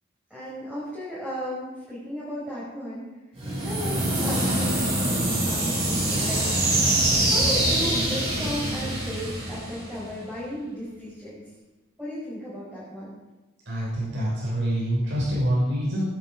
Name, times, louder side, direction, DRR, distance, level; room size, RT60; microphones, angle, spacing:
voice 1, 0.3-3.1 3.6-6.5 7.2-11.4 12.0-13.2, equal, 5° right, -10 dB, 5.6 m, -35 dB
sound 1, 3.4-10.3, right 1 dB, 25° right, 6.9 m, -24 dB
voice 2, 13.7-16.1, equal, 65° right, -6 dB, 6.0 m, -26 dB
22.0 x 10.0 x 5.0 m, 1.1 s
head